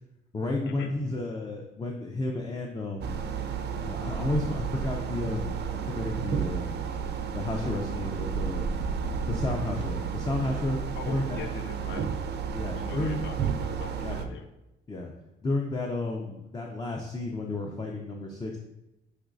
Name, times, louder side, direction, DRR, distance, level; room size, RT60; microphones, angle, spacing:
voice 1, 0.3-3.3 3.8-6.8 7.3-8.7 9.3-10.8 11.1-11.4 12.5-13.2 13.9-14.4 14.9-15.1 15.4-18.6, left 2 dB, 20° left, 0 dB, 0.5 m, -32 dB
sound 1, 3.0-14.3, right 6 dB, 55° right, 0.4 m, -32 dB
voice 2, 11.0-12.1 12.8-14.5, left 6 dB, 70° left, 7 dB, 0.5 m, -41 dB
5.8 x 3.1 x 2.5 m, 0.94 s
cardioid pair, 90°, 20 cm